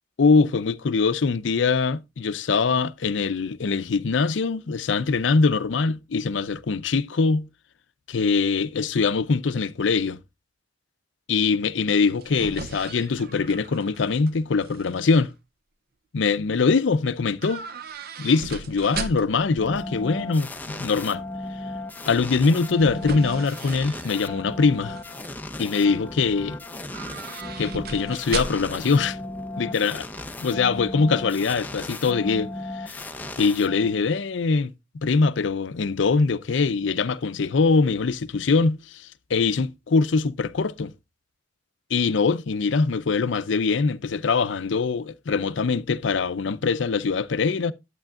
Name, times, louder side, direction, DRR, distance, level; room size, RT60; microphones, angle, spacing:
voice 1, 0.2-7.5 8.1-10.2 11.3-15.3 16.1-17.6 18.2-21.2 22.1-25.0 25.6-26.6 27.6-29.2 29.6-30.1 30.4-32.5 32.7-33.0 33.4-34.7 35.0-39.0 39.3-40.9 41.9-47.7, left 4 dB, 70° left, 0.5 m, -23 dB
sound 1, 11.9-14.3 14.6-15.2 17.4-19.5 22.3-24.4 24.8-25.3 26.8-28.9 29.1-29.2, right 4 dB, 50° right, 0.6 m, -37 dB
sound 2, 19.6-34.2, left 2 dB, 10° left, 0.6 m, -36 dB
11.5 x 8.4 x 2.4 m
head